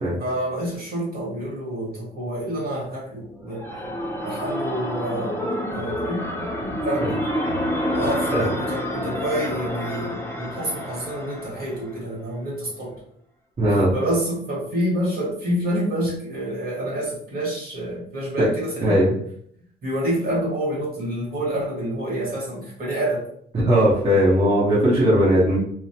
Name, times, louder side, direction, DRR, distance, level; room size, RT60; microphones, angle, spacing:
voice 1, 0.2-3.8 4.2-5.4 5.7-7.2 7.9-13.0 13.7-19.1 19.8-23.3, right 1 dB, 50° right, -4 dB, 1.5 m, -28 dB
sound 1, 3.2-12.0, equal, 10° left, 0.6 m, -28 dB
voice 2, 13.6-13.9 18.8-19.1 23.5-25.6, equal, 30° right, -9 dB, 1.1 m, -18 dB
3.0 x 2.0 x 2.8 m, 0.66 s
cardioid pair, 90°, 20 cm